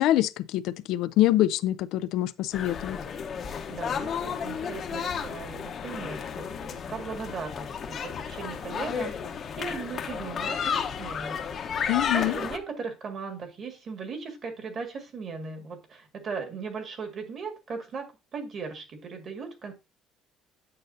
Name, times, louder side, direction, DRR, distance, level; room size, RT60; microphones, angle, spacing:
voice 1, 0.0-3.0 11.9-12.4, left 14 dB, 75° left, 0.4 m, -25 dB
sound 1, 2.5-12.6, left 7 dB, 45° left, 0.9 m, -33 dB
voice 2, 3.7-11.5 12.1-19.7, right 5 dB, 40° right, 1.8 m, -38 dB
8.6 x 6.6 x 2.6 m
cardioid pair, 120°, 0 cm